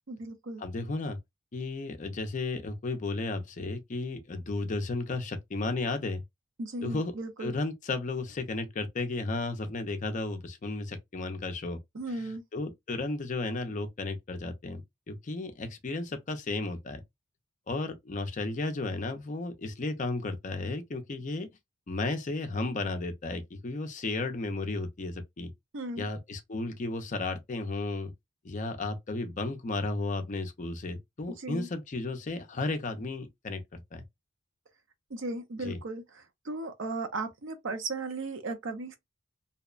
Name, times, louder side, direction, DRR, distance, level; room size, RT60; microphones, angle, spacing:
voice 1, 0.1-0.6 6.6-7.6 11.9-12.4 25.7-26.1 31.4-31.7 35.1-39.0, right 2 dB, 65° right, 0.6 m, -36 dB
voice 2, 0.6-1.2 1.5-6.2 6.8-7.1 7.4-11.8 12.1-17.0 17.7-21.5 21.9-25.5 26.0-28.1 28.4-34.0 35.6-35.8, left 3 dB, 35° left, 0.4 m, -34 dB
2.8 x 2.1 x 2.3 m
head